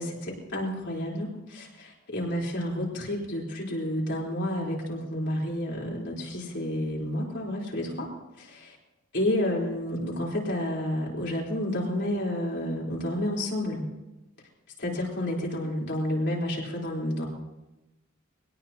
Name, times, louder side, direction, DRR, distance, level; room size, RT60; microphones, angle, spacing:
voice 1, 0.0-8.1 8.4-8.8 9.1-13.8 14.8-17.3, left 1 dB, 55° left, -4 dB, 3.9 m, -30 dB
24.5 x 18.5 x 2.9 m, 1.0 s
head